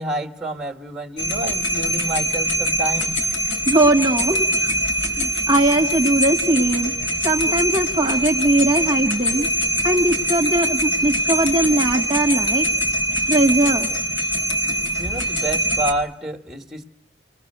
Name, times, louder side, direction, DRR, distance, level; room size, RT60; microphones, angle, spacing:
voice 1, 0.0-3.1 15.0-16.8, right 2 dB, 5° right, 6 dB, 1.8 m, -28 dB
sound 1, 1.2-15.9, equal, 90° left, 3.9 m, -23 dB
voice 2, 3.6-4.7 5.2-6.9 7.2-9.5 9.8-12.7 13.3-13.9, right 1 dB, 25° right, 1 dB, 1.5 m, -20 dB
29.5 x 21.0 x 6.8 m, 0.72 s
head